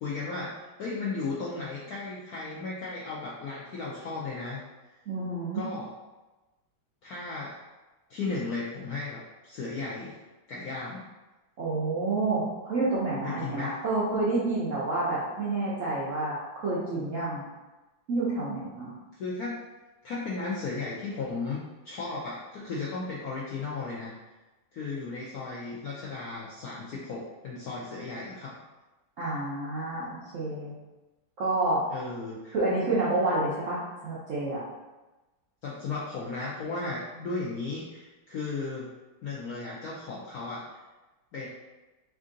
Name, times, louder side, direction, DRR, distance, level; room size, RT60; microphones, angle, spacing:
voice 1, 0.0-4.6 5.5-5.9 7.0-7.6 8.1-10.1 10.5-11.1 13.2-13.8 19.1-19.6 20.0-21.6 21.8-24.1 24.7-28.6 31.9-32.5 35.6-38.9 39.2-40.6 41.3-41.5, left 3 dB, 75° left, -6 dB, 0.8 m, -35 dB
voice 2, 5.1-5.6 11.6-17.4 18.1-18.9 29.2-30.7 31.4-31.8 32.5-34.6, right 2 dB, 65° right, -8 dB, 0.7 m, -29 dB
3.6 x 2.6 x 3.7 m, 1.1 s
omnidirectional pair, 2.2 m